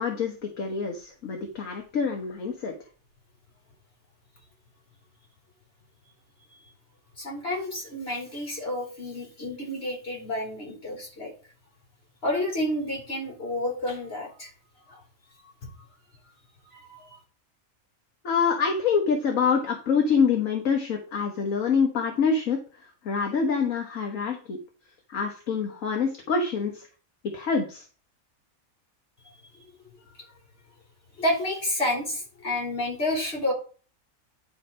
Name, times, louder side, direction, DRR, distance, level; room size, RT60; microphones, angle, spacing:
voice 1, 0.0-2.7 18.2-24.6 25.1-26.9 27.3-27.9, left 5 dB, 65° left, 1 dB, 1.7 m, -26 dB
voice 2, 7.2-11.3 12.2-14.5 14.9-15.0 15.6-15.7 16.7-17.2 30.2-30.3 31.2-33.5, left 1 dB, 40° left, -1 dB, 3.7 m, -30 dB
10.0 x 4.4 x 5.3 m, 0.39 s
omnidirectional pair, 1.5 m